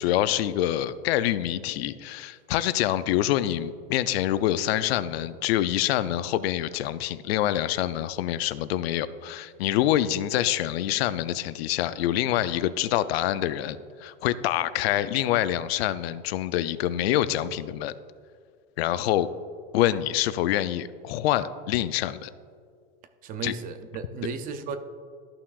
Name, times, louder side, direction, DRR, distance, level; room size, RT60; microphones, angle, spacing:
voice 1, 0.0-17.9 18.8-19.3 19.7-22.3 23.4-23.5, left 13 dB, 80° left, 14 dB, 0.5 m, -26 dB
voice 2, 23.2-24.8, right 5 dB, 30° right, 9 dB, 0.5 m, -34 dB
13.5 x 5.8 x 2.4 m, 2.1 s
supercardioid pair, 140°, 30 cm